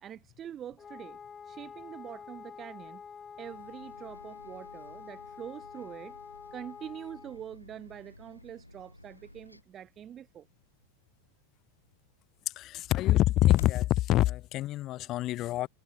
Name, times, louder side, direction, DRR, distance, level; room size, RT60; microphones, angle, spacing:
voice 1, 0.0-1.2 1.4-3.0 3.4-6.2 6.5-10.5, right 10 dB, 25° right, 1.9 m, -44 dB
Wind instrument woodwind instrument, 0.8-7.4, left 6 dB, 20° left, 3.4 m, -47 dB
Bus, 3.4-9.6, left 1 dB, 85° left, 3.3 m, -55 dB
sound 1, 7.7-13.9, left 13 dB, 60° left, 6.1 m, -51 dB
voice 2, 12.6-15.7, left 15 dB, 35° left, 0.6 m, -26 dB
figure-of-eight pair, 90°, 0 cm